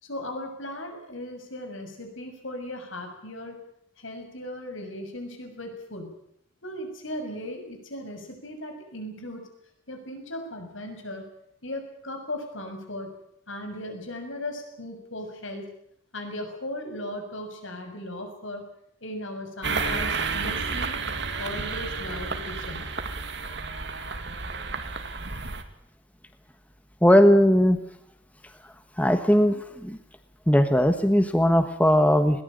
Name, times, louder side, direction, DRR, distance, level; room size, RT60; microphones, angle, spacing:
voice 1, 0.0-3.6 4.0-6.2 6.6-9.5 9.9-11.3 11.6-13.2 13.5-15.7 16.1-18.7 19.0-20.9 21.4-22.9, left 1 dB, 75° left, 5 dB, 6.8 m, -37 dB
sound 1, 19.6-25.6, right 4 dB, 60° right, 2.4 m, -31 dB
voice 2, 27.0-27.8 29.0-29.6 29.8-30.0 30.5-32.4, equal, 5° left, 8 dB, 1.2 m, -18 dB
21.5 x 19.0 x 9.1 m, 0.72 s
head